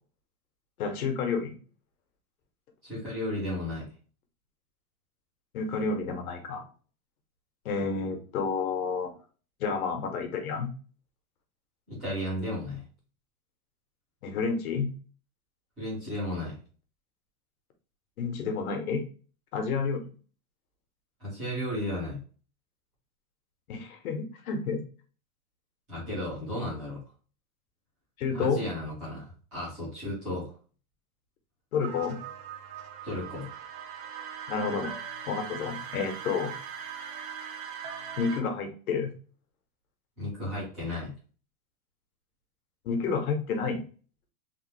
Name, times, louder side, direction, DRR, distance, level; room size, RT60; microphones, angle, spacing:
voice 1, 0.8-1.6 5.5-6.6 7.6-9.1 9.6-10.7 14.2-14.9 18.2-19.0 19.5-20.1 23.7-24.8 28.2-28.6 31.7-32.2 34.5-34.9 35.3-36.5 38.2-39.1 42.8-43.8, left 5 dB, 80° left, 5 dB, 1.2 m, -30 dB
voice 2, 2.8-3.9 11.9-12.8 15.8-16.6 21.2-22.2 25.9-27.0 28.3-30.5 33.0-33.5 40.2-41.1, left 1 dB, 5° right, -12 dB, 0.3 m, -34 dB
sound 1, 31.8-38.4, right 7 dB, 60° right, 0.9 m, -40 dB
3.4 x 2.7 x 3.2 m, 0.39 s
supercardioid pair, 175°, 43 cm